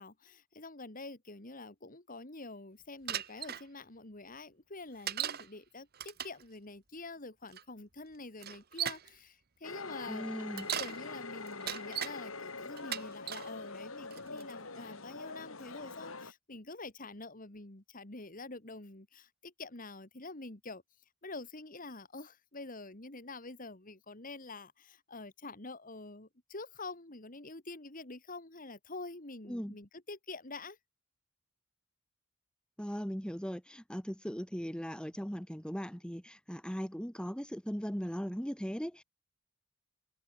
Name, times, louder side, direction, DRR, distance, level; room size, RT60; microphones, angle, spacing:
voice 1, 0.0-10.3 10.8-20.8 21.2-30.8, left 3 dB, 40° left, 2.3 m, -47 dB
Bicycle, 3.1-3.6 5.1-5.5 5.9-6.4 7.5-7.6 8.4-9.1 10.4-11.0 11.5-12.1 12.8-13.5 14.1-14.5, right 10 dB, 45° right, 1.4 m, -37 dB
sound 1, 9.6-16.3, left 3 dB, 75° left, 4.7 m, -44 dB
voice 2, 10.1-10.7 29.5-29.8 32.8-39.0, equal, 5° left, 1.9 m, -38 dB
head